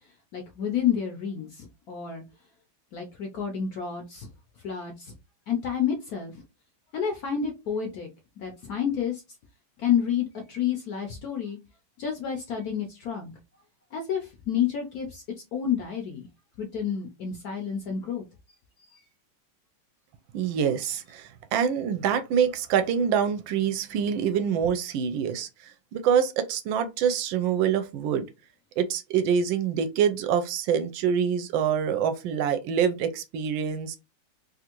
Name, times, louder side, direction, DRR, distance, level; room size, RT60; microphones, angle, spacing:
voice 1, 0.3-2.2 2.9-4.3 4.6-5.1 5.5-6.3 6.9-8.1 8.4-9.2 9.8-11.6 12.0-13.3 13.9-15.2 15.5-16.3 16.6-18.2 18.9-19.0, left 8 dB, 70° left, 0.9 m, -29 dB
voice 2, 20.3-25.5 25.9-28.2 28.8-34.0, right 8 dB, 80° right, 1.3 m, -25 dB
3.4 x 2.5 x 2.9 m
omnidirectional pair, 2.2 m